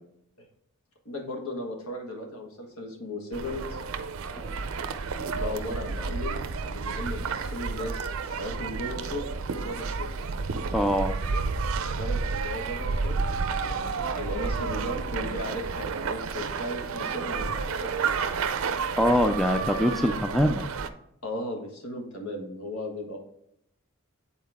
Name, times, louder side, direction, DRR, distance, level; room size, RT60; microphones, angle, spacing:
voice 1, 1.0-3.8 5.3-10.1 11.9-18.2 21.2-23.2, left 1 dB, 80° left, 1 dB, 1.5 m, -36 dB
sound 1, 3.3-20.9, right 4 dB, 65° right, 0.5 m, -31 dB
voice 2, 10.7-11.1 19.0-20.6, equal, ahead, 6 dB, 0.3 m, -23 dB
8.5 x 4.3 x 3.5 m, 0.77 s
head